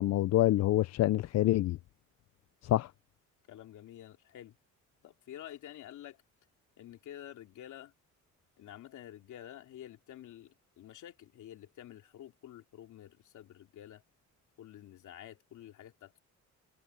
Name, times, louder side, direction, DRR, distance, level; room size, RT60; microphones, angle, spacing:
voice 1, 0.0-1.8 2.6-2.9, left 14 dB, 60° left, 0.5 m, -26 dB
voice 2, 3.5-4.6 5.0-6.2 6.8-7.9 8.6-14.0 14.6-16.2, left 11 dB, 75° left, 2.8 m, -49 dB
cardioid pair, 90°, 30 cm